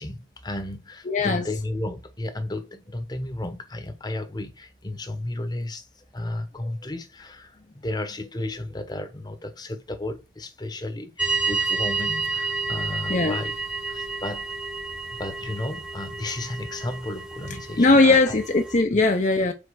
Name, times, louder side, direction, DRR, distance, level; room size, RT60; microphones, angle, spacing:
voice 1, 0.0-13.6 13.9-14.5 15.1-18.4, left 1 dB, 25° left, 1.0 m, -33 dB
voice 2, 1.1-1.5 13.1-13.4 17.8-19.5, left 3 dB, 45° left, 0.7 m, -19 dB
sound 1, 11.2-18.8, right 3 dB, 5° right, 1.0 m, -30 dB
5.3 x 4.5 x 6.2 m
head